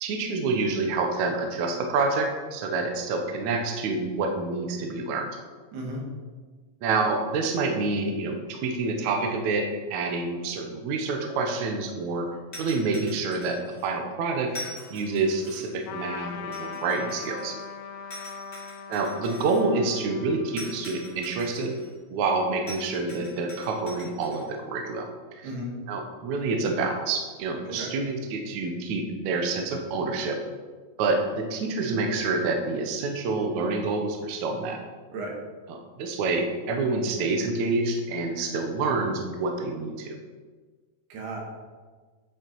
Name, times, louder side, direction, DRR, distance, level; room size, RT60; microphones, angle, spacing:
voice 1, 0.0-5.3 6.8-12.3 12.6-14.5 14.9-17.5 18.9-21.8 22.1-25.1 25.4-25.5 25.9-30.4 31.0-34.8 35.7-40.2, right 3 dB, 70° right, 3 dB, 1.9 m, -27 dB
voice 2, 5.7-6.0 25.4-25.7 27.7-27.9 35.1-35.4 41.1-41.4, right 1 dB, 85° right, -1 dB, 3.8 m, -34 dB
sound 1, 12.5-13.8 14.5-15.8 16.5-17.6 18.1-19.6 20.6-21.9 22.7-24.4, left 1 dB, 20° left, 2.3 m, -43 dB
Trumpet, 15.9-21.7, left 5 dB, 85° left, 2.7 m, -40 dB
10.0 x 6.5 x 4.6 m, 1.4 s
omnidirectional pair, 4.4 m